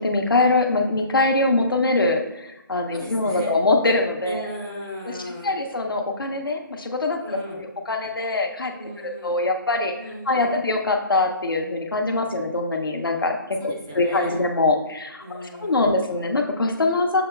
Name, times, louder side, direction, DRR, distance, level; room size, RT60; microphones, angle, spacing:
voice 1, 0.0-4.5 5.4-9.9 10.3-13.6 13.9-17.2, left 2 dB, 80° left, 3 dB, 0.8 m, -23 dB
voice 2, 2.9-3.5 4.2-5.5 7.2-7.7 8.8-9.3 10.0-10.6 13.6-14.4 15.2-15.9, equal, 10° right, -4 dB, 0.3 m, -36 dB
6.8 x 2.9 x 2.3 m, 0.96 s
figure-of-eight pair, 165°, 11 cm